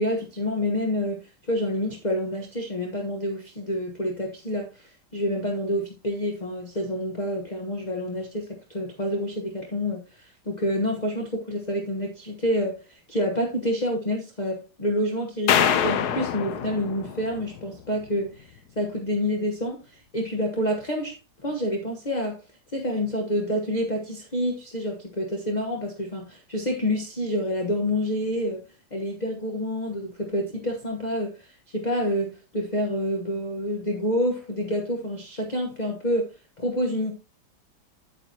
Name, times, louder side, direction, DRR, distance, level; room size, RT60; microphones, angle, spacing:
voice 1, 0.0-21.2 21.4-22.4 22.7-28.7 28.9-37.1, equal, 25° left, 1.1 m, -28 dB
sound 1, 15.5-17.8, left 8 dB, 65° left, 1.1 m, -25 dB
9.2 x 8.5 x 2.9 m
omnidirectional pair, 2.1 m